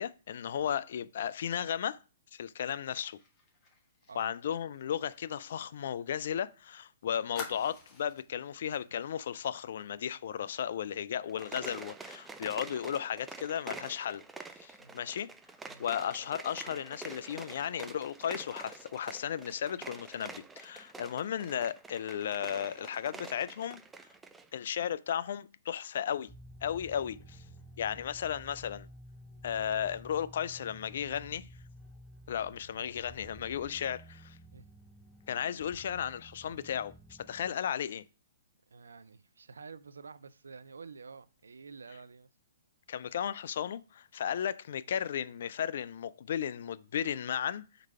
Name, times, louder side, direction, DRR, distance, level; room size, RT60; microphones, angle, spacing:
voice 1, 0.0-2.0 2.3-3.2 4.2-15.3 15.8-23.8 24.5-26.3 26.6-27.4 27.8-28.9 29.4-31.5 32.3-34.4 35.3-38.0 42.9-47.6, left 9 dB, 60° left, 0.3 m, -35 dB
Fire, 3.0-6.5 6.7-6.8 7.3-8.3 8.7-8.9 9.2-9.5, left 4 dB, 25° left, 1.8 m, -49 dB
sound 1, 11.2-24.5, right 4 dB, 10° right, 0.4 m, -47 dB
voice 2, 14.8-15.1 15.7-15.9 34.5-34.7 38.7-42.3, right 5 dB, 75° right, 0.4 m, -49 dB
sound 2, 26.3-37.5, equal, 10° left, 1.2 m, -53 dB
4.5 x 3.9 x 5.5 m
figure-of-eight pair, 125°, 0 cm